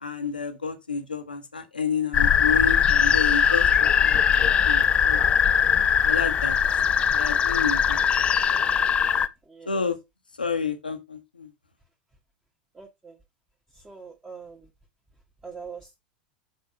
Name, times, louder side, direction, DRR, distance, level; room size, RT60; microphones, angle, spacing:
voice 1, 0.0-5.2 6.0-6.6 7.1-8.0 9.7-10.0 10.4-11.5, left 5 dB, 85° left, 1.1 m, -30 dB
sound 1, 2.1-9.3, left 8 dB, 25° left, 0.4 m, -21 dB
voice 2, 12.7-13.2 13.8-14.7 15.4-16.0, right 5 dB, 15° right, 1.4 m, -42 dB
6.7 x 4.6 x 4.5 m
figure-of-eight pair, 85°, 5 cm